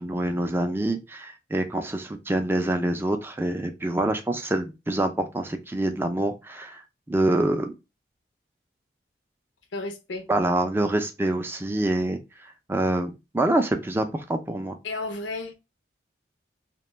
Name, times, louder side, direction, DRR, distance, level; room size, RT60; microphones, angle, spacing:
voice 1, 0.0-6.8 7.1-7.7 10.3-12.2 12.7-14.8, right 1 dB, 10° right, 0.3 m, -26 dB
voice 2, 9.7-10.2 14.8-15.5, left 2 dB, 85° left, 0.6 m, -32 dB
2.5 x 2.2 x 3.0 m
head